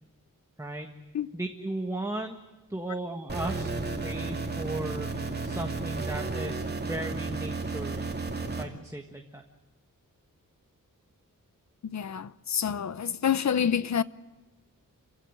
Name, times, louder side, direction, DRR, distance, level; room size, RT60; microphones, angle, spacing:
voice 1, 0.6-1.0 1.3-2.4 2.7-3.7 4.0-8.1 8.6-9.4 12.6-12.7, right 1 dB, 10° right, 1.5 m, -36 dB
sound 1, 3.3-8.6, right 3 dB, 30° right, 2.5 m, -33 dB
voice 2, 11.9-14.0, left 8 dB, 55° left, 0.8 m, -27 dB
28.5 x 16.5 x 8.8 m
wide cardioid pair, 165°, 33 cm